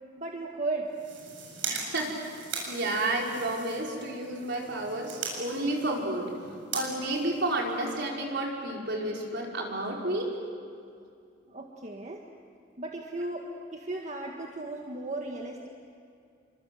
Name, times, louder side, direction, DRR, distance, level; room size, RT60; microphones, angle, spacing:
voice 1, 0.2-0.9 11.5-12.2 12.8-15.7, right 2 dB, 40° right, 1 dB, 1.8 m, -35 dB
sound 1, 0.8-8.1, right 4 dB, 80° right, 7.6 m, -40 dB
voice 2, 1.7-2.3 2.7-6.4 6.7-10.3, right 1 dB, 65° right, -1 dB, 5.4 m, -31 dB
30.0 x 25.5 x 7.8 m, 2.4 s
head